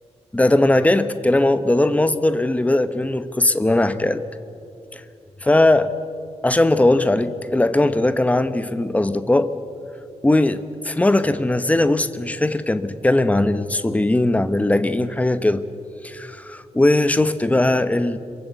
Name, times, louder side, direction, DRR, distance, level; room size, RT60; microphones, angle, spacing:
voice 1, 0.3-4.2 4.9-5.0 5.4-5.9 6.4-9.5 10.2-15.6 16.0-18.2, left 2 dB, 10° left, 12 dB, 1.0 m, -19 dB
26.5 x 23.0 x 8.2 m, 2.6 s
wide cardioid pair, 160°, 12 cm